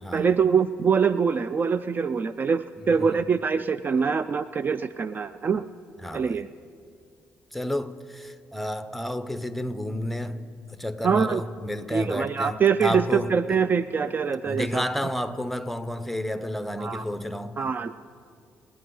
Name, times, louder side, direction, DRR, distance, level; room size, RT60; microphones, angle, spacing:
voice 1, 0.1-5.7 6.1-6.5 11.0-11.4 11.9-14.9 16.8-17.0 17.6-17.9, right 6 dB, 40° right, 0.4 m, -24 dB
voice 2, 2.8-3.3 6.0-6.4 7.5-13.6 14.5-17.6, left 1 dB, ahead, 0.8 m, -31 dB
27.5 x 9.5 x 3.9 m
cardioid pair, 75°, 5 cm